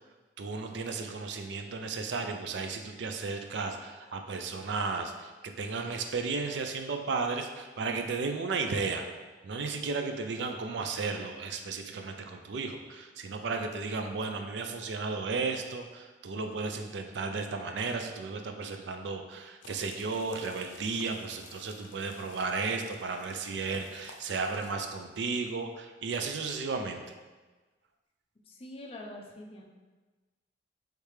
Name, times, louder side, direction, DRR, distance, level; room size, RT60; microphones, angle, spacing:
voice 1, 0.4-9.1 9.4-27.0, right 4 dB, 65° right, 5 dB, 0.4 m, -34 dB
sound 1, 19.6-24.7, left 4 dB, 85° left, 0.5 m, -53 dB
voice 2, 28.5-29.6, left 1 dB, 30° left, 1 dB, 0.5 m, -44 dB
3.3 x 3.2 x 4.8 m, 1.3 s
head